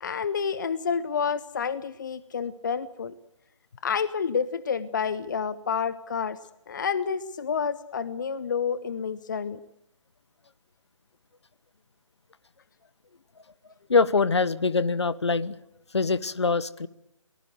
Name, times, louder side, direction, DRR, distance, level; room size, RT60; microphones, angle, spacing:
voice 1, 0.0-3.1 3.8-6.4 6.7-9.6, left 6 dB, 35° left, 16 dB, 0.8 m, -29 dB
voice 2, 13.9-15.6 15.9-16.9, left 4 dB, 60° left, 18 dB, 1.1 m, -23 dB
23.5 x 19.5 x 8.0 m, 0.83 s
figure-of-eight pair, 150°, 16 cm